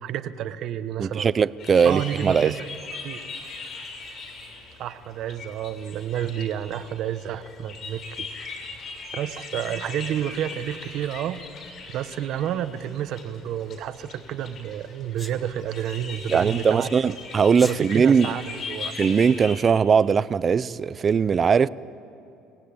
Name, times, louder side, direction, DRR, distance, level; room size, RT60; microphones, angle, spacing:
voice 1, 0.0-1.3 1.8-2.8 3.0-3.2 4.8-8.3 9.1-11.4 11.9-17.1 17.6-18.9, right 10 dB, 60° right, 1.1 m, -30 dB
voice 2, 1.0-2.5 16.3-18.3 19.0-21.7, right 6 dB, 30° right, 0.5 m, -20 dB
sound 1, 1.6-19.5, left 4 dB, 50° left, 6.4 m, -39 dB
Sneeze, 15.2-15.4 17.5-17.8, left 2 dB, 15° left, 1.8 m, -37 dB
24.5 x 18.5 x 8.6 m
cardioid pair, 130°, 0 cm